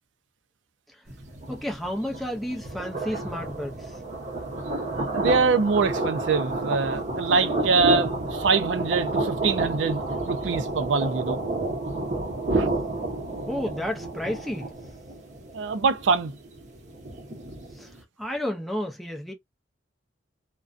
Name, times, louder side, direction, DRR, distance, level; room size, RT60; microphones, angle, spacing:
sound 1, 1.1-18.0, right 2 dB, 40° right, 0.7 m, -30 dB
voice 1, 1.5-4.0 13.5-14.7 17.8-17.9 18.2-19.3, left 1 dB, ahead, 0.5 m, -31 dB
voice 2, 4.9-10.0 10.3-11.4 12.5-12.7 15.5-16.4, right 4 dB, 80° right, 0.5 m, -24 dB
2.4 x 2.2 x 2.4 m
head